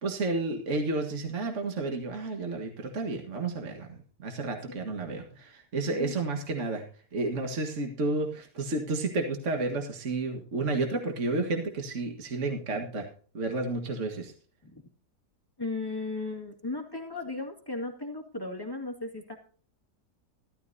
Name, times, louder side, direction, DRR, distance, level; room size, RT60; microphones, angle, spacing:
voice 1, 0.0-6.8 7.1-13.1 13.3-14.3, right 2 dB, 45° right, 3 dB, 2.0 m, -31 dB
voice 2, 15.6-19.4, left 3 dB, 15° left, 1 dB, 2.0 m, -36 dB
15.0 x 13.0 x 2.7 m, 0.42 s
omnidirectional pair, 1.8 m